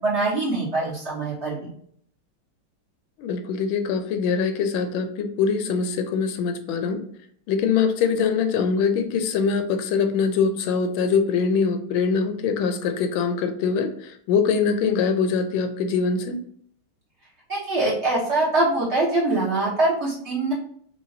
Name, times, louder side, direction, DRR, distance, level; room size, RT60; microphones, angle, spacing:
voice 1, 0.0-1.7 17.5-20.5, right 2 dB, 45° right, -6 dB, 1.0 m, -23 dB
voice 2, 3.2-7.0 7.5-13.9 14.3-16.4, left 5 dB, 85° left, 7 dB, 1.3 m, -23 dB
4.8 x 2.5 x 2.6 m, 0.62 s
omnidirectional pair, 2.1 m